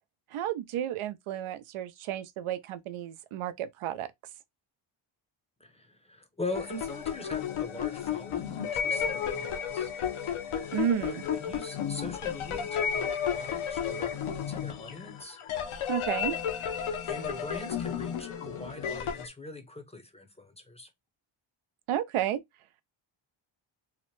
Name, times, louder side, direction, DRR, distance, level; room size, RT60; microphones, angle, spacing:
voice 1, 0.3-4.1 10.7-11.2 15.9-16.3 21.9-22.4, right 11 dB, 80° right, 0.5 m, -32 dB
voice 2, 5.6-9.9 11.0-15.4 17.0-20.9, left 2 dB, 15° left, 0.5 m, -42 dB
sound 1, 6.5-19.3, left 8 dB, 75° left, 0.7 m, -33 dB
2.8 x 2.1 x 3.0 m
cardioid pair, 105°, 50 cm